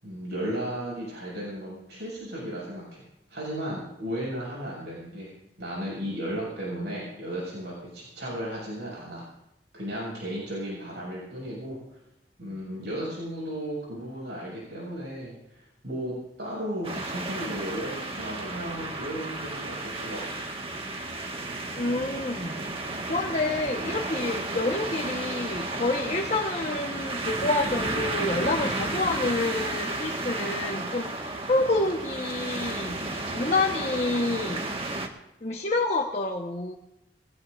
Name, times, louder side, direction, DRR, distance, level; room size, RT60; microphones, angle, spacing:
voice 1, 0.0-3.0 3.3-5.3 5.6-9.2 9.7-12.0 12.4-20.3, equal, 70° right, -5 dB, 7.5 m, -35 dB
sound 1, 16.8-35.1, right 2 dB, 35° right, 1.7 m, -33 dB
voice 2, 21.8-22.6 23.1-31.1 31.5-33.0 33.3-34.7 35.4-36.8, left 2 dB, 40° left, 1 dB, 1.3 m, -28 dB
22.5 x 18.5 x 2.7 m, 0.85 s
head